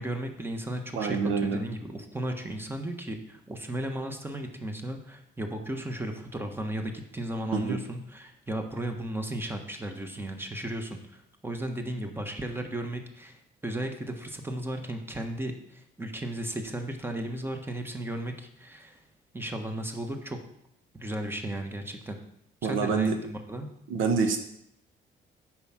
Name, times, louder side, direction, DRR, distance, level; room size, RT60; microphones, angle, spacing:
voice 1, 0.0-19.0 19.3-20.4 20.9-22.2 22.6-23.7, right 1 dB, 10° right, 5 dB, 1.4 m, -35 dB
voice 2, 1.0-1.6 7.5-7.8 22.6-23.2 23.9-24.4, right 5 dB, 85° right, 6 dB, 1.1 m, -26 dB
8.1 x 6.2 x 5.9 m, 0.76 s
cardioid pair, 90°, 20 cm